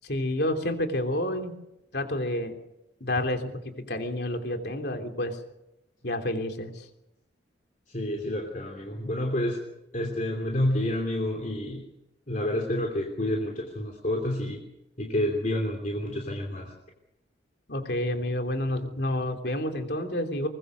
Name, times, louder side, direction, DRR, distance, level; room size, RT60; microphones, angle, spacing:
voice 1, 0.0-1.5 1.9-2.6 3.0-5.4 6.0-6.8 17.7-20.5, left 1 dB, 60° left, 5 dB, 3.3 m, -29 dB
voice 2, 7.9-9.6 9.9-11.8 12.3-14.6 15.0-16.7, left 1 dB, 40° left, 2 dB, 3.1 m, -29 dB
23.5 x 20.5 x 6.4 m, 0.87 s
head